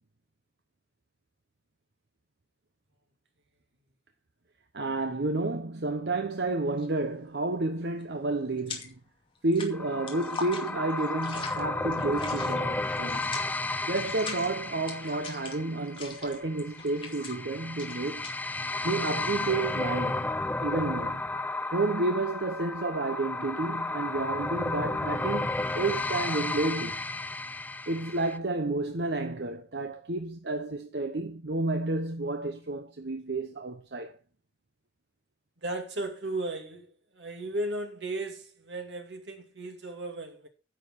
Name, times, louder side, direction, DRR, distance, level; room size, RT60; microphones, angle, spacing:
voice 1, 4.7-9.0 9.4-13.3 13.9-18.3 18.8-20.3 20.6-21.2 21.7-27.0 27.9-34.2, right 2 dB, 70° right, 0.9 m, -31 dB
sound 1, 6.7-7.0 7.3-9.1 9.3-20.9, left 5 dB, 30° left, 2.3 m, -43 dB
sound 2, 9.7-28.4, left 2 dB, 10° left, 0.5 m, -33 dB
voice 2, 35.6-40.5, right 2 dB, 90° right, 2.4 m, -35 dB
10.0 x 7.1 x 5.8 m
head